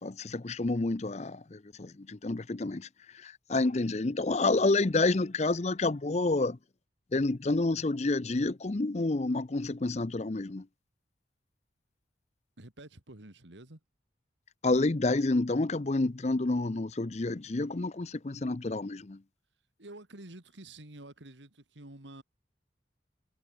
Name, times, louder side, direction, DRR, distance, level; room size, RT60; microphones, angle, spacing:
voice 1, 0.0-6.6 7.1-10.7 14.6-19.2, left 2 dB, 35° left, 0.6 m, -29 dB
voice 2, 12.6-13.8 19.8-22.2, right 2 dB, 80° right, 2.7 m, -49 dB
head